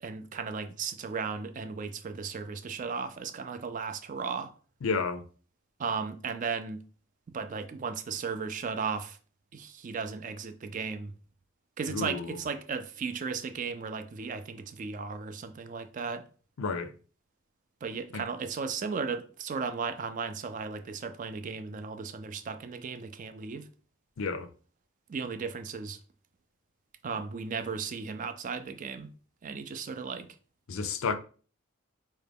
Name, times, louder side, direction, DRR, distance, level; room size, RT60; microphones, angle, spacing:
voice 1, 0.0-4.5 5.8-6.8 7.3-9.2 9.5-11.1 11.8-16.2 17.8-23.7 25.1-26.0 27.0-29.1 29.4-30.3, right 5 dB, 40° right, 0.3 m, -35 dB
voice 2, 4.8-5.2 11.9-12.3 16.6-16.9 18.1-18.2 24.2-24.5 30.7-31.1, left 4 dB, 70° left, 0.4 m, -31 dB
4.7 x 2.2 x 3.4 m
head